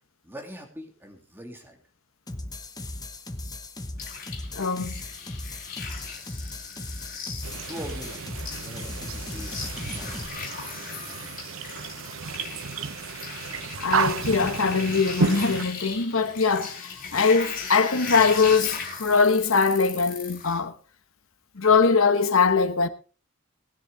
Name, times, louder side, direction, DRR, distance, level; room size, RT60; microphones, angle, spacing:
voice 1, 0.2-1.8 7.6-8.3 8.6-10.3 11.1-11.4, equal, 10° right, 2.5 m, -42 dB
sound 1, 2.3-10.3, left 2 dB, 20° left, 1.0 m, -37 dB
sound 2, 4.0-20.6, left 5 dB, 45° left, 4.7 m, -38 dB
voice 2, 4.5-4.9 13.8-20.7 21.6-22.9, left 5 dB, 85° left, 1.1 m, -22 dB
sound 3, 7.4-15.6, right 5 dB, 80° right, 0.9 m, -31 dB
19.0 x 10.5 x 3.4 m
head